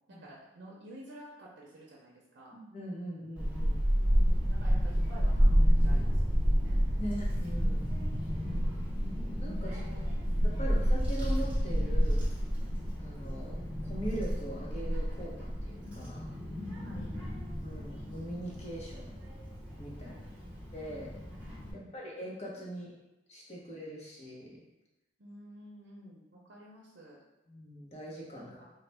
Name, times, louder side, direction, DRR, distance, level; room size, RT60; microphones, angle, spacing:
voice 1, 0.1-2.6 4.1-6.2 6.5-6.8 8.1-9.0 9.6-10.1 10.6-10.9 16.8-17.4 20.0-20.3 21.7-22.0 25.2-27.2 28.3-28.7, equal, 65° right, -4 dB, 0.6 m, -51 dB
voice 2, 2.5-3.8 7.0-7.9 9.4-9.8 10.4-12.3 13.0-16.3 17.6-19.3 19.8-20.2 20.7-21.2 21.7-22.9 23.3-24.6 27.5-28.6, equal, 35° left, -4 dB, 0.8 m, -41 dB
Child speech kid speaking / Wind, 3.4-21.7, equal, 5° right, 0.9 m, -30 dB
3.9 x 2.2 x 3.3 m, 0.96 s
head